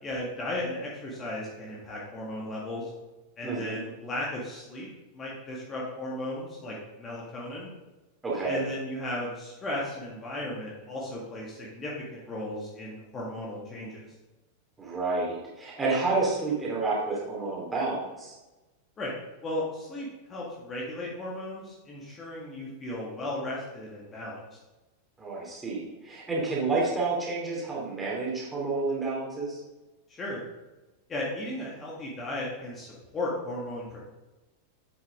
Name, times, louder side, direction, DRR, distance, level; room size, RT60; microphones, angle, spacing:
voice 1, 0.0-2.9 3.4-4.9 5.1-7.7 8.4-14.1 19.0-19.1 19.4-24.4 30.1-30.4 31.1-34.0, left 1 dB, 20° left, -5 dB, 1.9 m, -35 dB
voice 2, 3.4-3.8 8.2-8.6 14.8-18.3 25.2-29.6, right 3 dB, 10° right, -5 dB, 2.8 m, -29 dB
8.0 x 7.1 x 3.7 m, 1.1 s
figure-of-eight pair, 90°, 0 cm